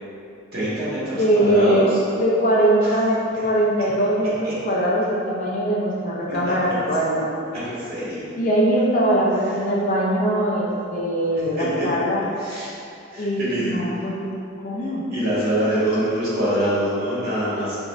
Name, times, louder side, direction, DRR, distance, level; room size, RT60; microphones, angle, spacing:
voice 1, 0.5-1.8 4.4-4.5 6.3-6.4 6.6-6.7 7.6-8.3 11.8-11.9 12.4-12.7 13.1-13.7 14.7-17.8, right 1 dB, 50° right, -10 dB, 1.4 m, -25 dB
voice 2, 1.1-1.9 2.2-7.3 8.4-12.2 13.2-14.3 14.6-15.0, right 1 dB, 40° left, -4 dB, 0.5 m, -21 dB
4.9 x 2.6 x 2.4 m, 2.6 s
head